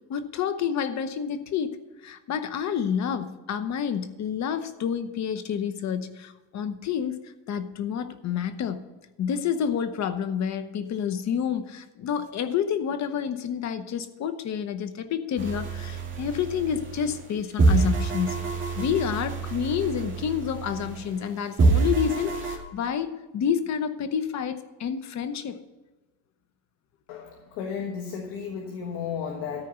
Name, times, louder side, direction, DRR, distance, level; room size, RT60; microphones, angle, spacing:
voice 1, 0.1-1.8 2.0-8.9 9.2-18.4 18.8-25.6, left 8 dB, 40° left, 11 dB, 0.9 m, -29 dB
sound 1, 15.4-17.2 17.6-21.3 21.6-22.6, right 4 dB, 25° right, 2.3 m, -26 dB
voice 2, 27.1-29.7, left 7 dB, 75° left, 1 dB, 1.6 m, -33 dB
13.5 x 4.6 x 8.0 m, 1.2 s
cardioid pair, 135°, 43 cm